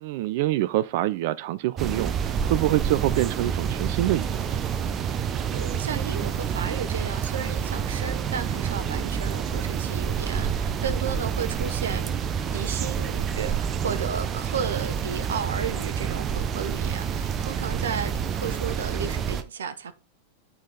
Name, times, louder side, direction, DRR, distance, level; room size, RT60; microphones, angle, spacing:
voice 1, 0.0-4.6 8.9-9.1, right 15 dB, 50° right, 0.3 m, -26 dB
sound 1, 1.8-19.4, right 7 dB, 30° right, 0.8 m, -28 dB
voice 2, 5.5-12.1 12.5-20.0, right 7 dB, 65° right, 0.9 m, -33 dB
8.8 x 5.5 x 3.9 m
figure-of-eight pair, 90°, 0 cm